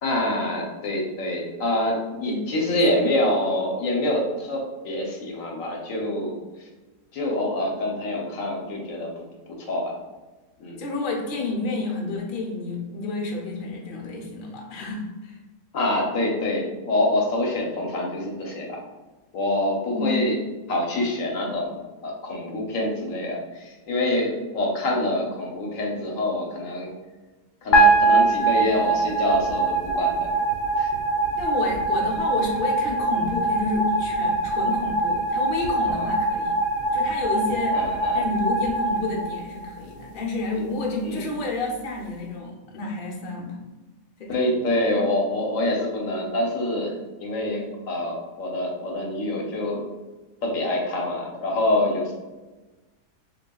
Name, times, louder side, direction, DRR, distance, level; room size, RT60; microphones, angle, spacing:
voice 1, 0.0-6.4 7.1-10.0 10.6-10.8 15.7-18.8 19.3-20.4 20.7-26.9 27.6-30.4 30.8-30.9 35.9-36.1 37.7-38.2 41.0-41.2 44.3-46.9 47.2-49.9 50.4-52.1, left 1 dB, 60° left, -1 dB, 1.1 m, -26 dB
voice 2, 2.3-3.0 10.8-15.4 19.9-20.4 31.4-36.6 36.9-43.6 44.2-44.3, left 3 dB, 45° left, -2 dB, 0.7 m, -30 dB
sound 1, 27.7-40.0, right 2 dB, 90° left, 1.3 m, -23 dB
6.8 x 2.4 x 2.2 m, 1.2 s
omnidirectional pair, 1.7 m